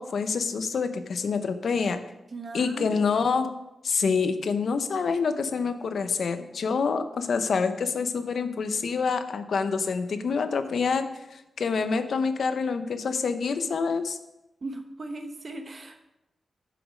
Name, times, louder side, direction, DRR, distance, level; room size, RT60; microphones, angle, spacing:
voice 1, 0.0-2.0 2.5-3.5 3.8-14.2, left 5 dB, 75° left, 9 dB, 0.7 m, -27 dB
voice 2, 2.3-3.0 14.6-16.0, right 2 dB, 45° right, 6 dB, 0.9 m, -38 dB
8.0 x 6.0 x 5.0 m, 0.93 s
wide cardioid pair, 105°, 0 cm